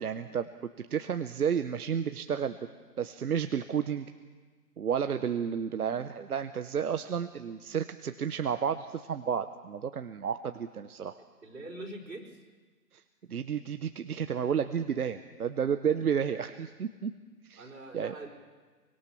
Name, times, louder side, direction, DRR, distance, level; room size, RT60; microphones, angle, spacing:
voice 1, 0.0-2.6 3.0-4.1 4.8-11.2 12.9-13.0 13.3-17.1 17.4-17.7 17.9-18.1, right 7 dB, 65° right, 9 dB, 1.0 m, -31 dB
voice 2, 11.4-12.4 17.6-18.3, right 2 dB, 85° right, 0 dB, 4.9 m, -43 dB
24.0 x 23.5 x 5.9 m, 1.4 s
figure-of-eight pair, 150°, 48 cm